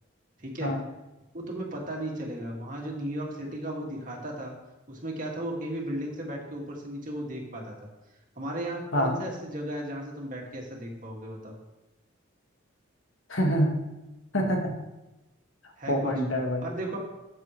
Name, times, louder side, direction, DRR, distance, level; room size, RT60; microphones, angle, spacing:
voice 1, 0.4-0.7 1.3-4.5 4.9-7.9 8.4-11.5 15.8-16.1 16.6-17.0, right 1 dB, 40° right, -1 dB, 2.3 m, -35 dB
voice 2, 13.3-13.8 14.3-14.7 15.9-16.7, equal, 80° left, 1 dB, 1.9 m, -26 dB
13.5 x 7.6 x 3.2 m, 0.99 s
head